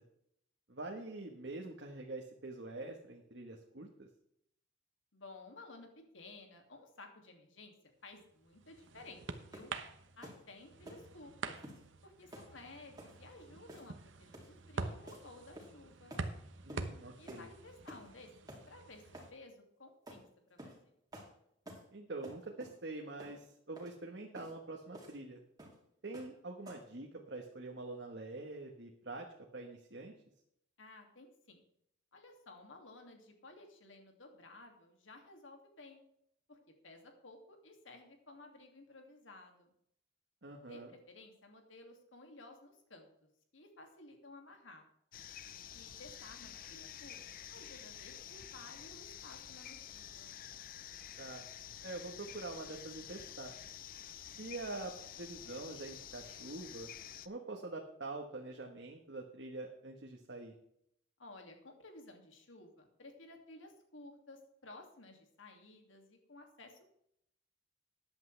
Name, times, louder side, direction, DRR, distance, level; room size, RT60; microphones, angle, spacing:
voice 1, 0.7-4.1 16.6-17.5 21.9-25.4 26.0-29.3 29.5-30.1 40.4-40.9 51.2-51.4 51.8-53.5 54.4-56.9 57.2-60.5, right 2 dB, 65° right, 1 dB, 1.4 m, -45 dB
voice 2, 5.1-5.9 6.1-7.7 8.0-9.7 10.2-11.6 12.0-16.2 17.2-18.3 18.7-19.0 19.3-20.6 30.8-31.6 32.1-36.0 36.5-36.6 36.8-39.7 40.7-43.1 43.5-44.9 45.7-47.2 47.5-50.3 61.2-66.8, left 2 dB, 90° left, 3 dB, 2.5 m, -55 dB
sound 1, 8.2-19.3, right 3 dB, 80° right, 1.1 m, -46 dB
sound 2, 9.5-9.8 10.2-10.4 10.8-11.1 11.6-11.8 12.3-12.5 13.0-13.2 13.7-14.0 14.3-14.5 15.1-15.2 15.5-15.8 16.1-16.3 16.7-16.9 17.3-17.5 17.9-18.1 18.5-18.6 19.1-19.3 20.1-20.2 20.6-20.8 21.1-21.3 21.6-21.9 22.2-22.8 23.2-23.4 23.7-23.9 24.3-24.5 24.9-25.2 25.6-25.8 26.1-26.3 26.6-26.9, equal, 20° right, 2.8 m, -51 dB
sound 3, 45.1-57.3, left 10 dB, 45° left, 0.6 m, -50 dB
14.0 x 10.5 x 3.4 m, 0.73 s
head